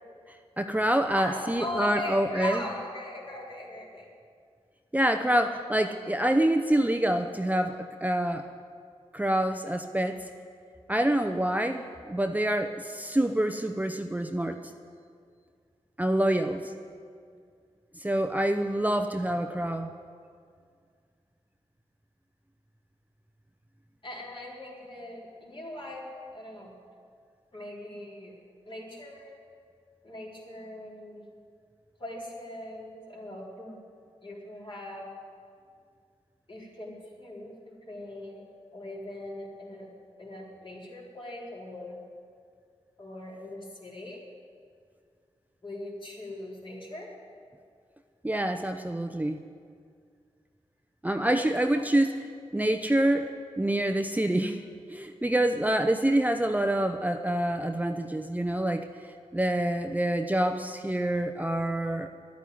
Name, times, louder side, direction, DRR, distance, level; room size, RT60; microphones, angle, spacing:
voice 1, 0.3-2.6 4.9-8.5 9.1-10.2 10.9-14.6 16.0-16.7 18.0-19.9 48.2-49.4 51.0-52.2 52.5-53.3 53.6-54.6 54.9-58.9 59.3-62.1, right 1 dB, 15° right, 6 dB, 0.7 m, -26 dB
voice 2, 1.1-4.1 24.0-26.7 27.5-28.4 28.7-29.4 30.0-31.2 32.0-33.8 34.2-35.1 36.5-37.5 37.8-38.4 38.7-39.9 40.2-42.0 43.0-44.2 45.6-47.1 51.2-51.5 51.7-51.8, left 1 dB, 45° left, -4 dB, 4.1 m, -40 dB
11.5 x 9.3 x 9.5 m, 2.2 s
cardioid pair, 45°, 12 cm